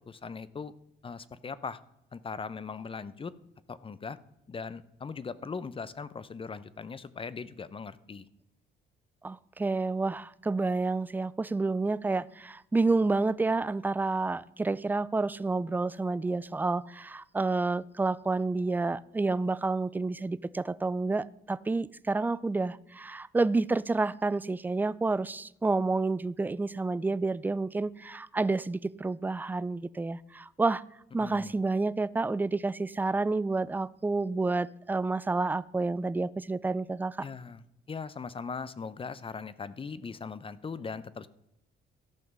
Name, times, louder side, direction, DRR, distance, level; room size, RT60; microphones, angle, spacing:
voice 1, 0.1-0.7 1.0-1.8 2.1-3.3 3.7-4.2 4.5-8.3 31.2-31.5 37.2-41.3, left 5 dB, 25° left, 16 dB, 0.6 m, -39 dB
voice 2, 9.2-30.8 31.1-37.3, right 3 dB, 10° right, 19 dB, 0.3 m, -29 dB
14.0 x 5.8 x 5.4 m, 0.82 s
cardioid pair, 90°, 20 cm